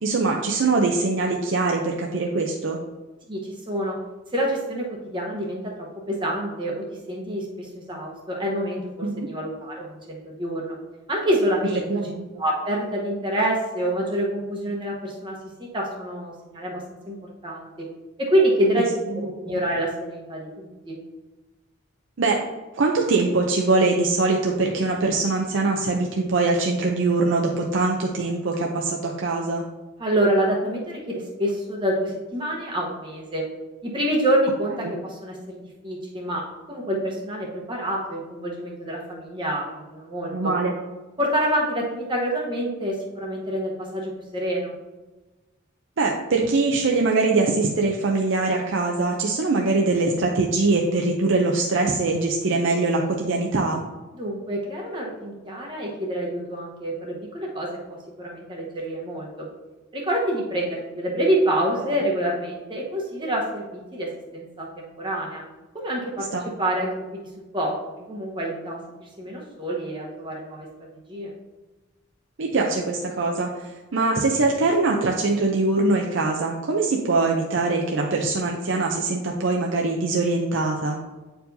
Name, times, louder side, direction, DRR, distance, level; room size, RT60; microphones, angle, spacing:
voice 1, 0.0-2.8 9.0-9.3 11.9-12.4 18.7-18.8 19.1-19.5 22.2-22.4 22.7-29.6 40.3-40.7 46.0-53.8 66.3-66.5 72.4-81.0, right 3 dB, 60° right, 0 dB, 0.6 m, -23 dB
voice 2, 3.3-4.0 4.3-6.7 7.1-10.8 11.1-11.9 12.4-17.9 18.2-18.8 19.4-21.0 30.0-33.4 33.8-36.4 36.7-40.5 41.2-44.7 54.1-59.5 59.9-65.4 65.7-66.3 66.6-70.7 71.1-71.3, right 1 dB, 20° right, -2 dB, 1.0 m, -27 dB
8.9 x 4.6 x 2.7 m, 1.2 s
head